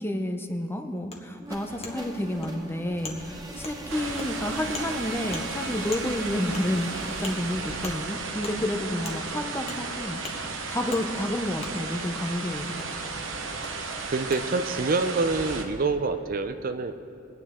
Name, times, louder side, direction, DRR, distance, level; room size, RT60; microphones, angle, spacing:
voice 1, 0.0-6.9 7.2-12.9, left 1 dB, 10° left, 5 dB, 0.7 m, -30 dB
Wood, 1.1-1.2 1.8-1.9 2.4-2.5 3.0-3.2 3.6-3.8 4.2-4.3 4.7-4.9 5.3-5.4 5.9-6.0 6.5-6.6 7.2-7.3 7.8-8.0 8.4-8.6 9.0-9.2 9.7-9.8 10.2-10.4 10.9-11.0 11.6-11.7 12.8-12.9 13.6-13.7 14.3-14.4, left 3 dB, 30° left, 1.3 m, -38 dB
sound 1, 1.4-9.3, right 2 dB, 20° right, 1.0 m, -41 dB
sound 2, 3.9-15.6, right 4 dB, 85° right, 1.1 m, -34 dB
voice 2, 14.1-16.9, right 3 dB, 45° right, 9 dB, 0.5 m, -26 dB
22.0 x 9.3 x 3.6 m, 2.6 s
head